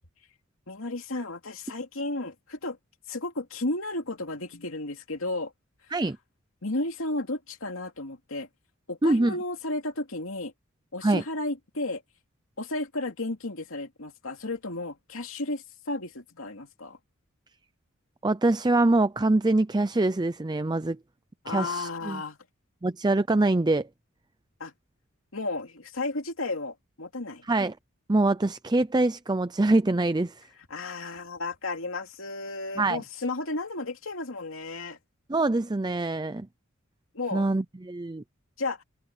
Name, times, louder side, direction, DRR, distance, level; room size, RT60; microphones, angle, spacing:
voice 1, 0.7-2.8 3.1-5.5 6.6-8.5 8.9-10.5 10.9-12.0 12.6-17.0 21.4-22.4 24.6-24.7 25.3-27.4 30.7-35.0 37.1-37.5 38.6-38.8, left 2 dB, 80° left, 2.7 m, -33 dB
voice 2, 9.0-9.3 11.0-11.2 18.2-21.0 21.5-22.2 22.8-23.9 27.5-27.7 28.1-30.5 32.8-33.0 35.3-36.5 37.3-38.2, right 2 dB, 20° right, 0.6 m, -24 dB
head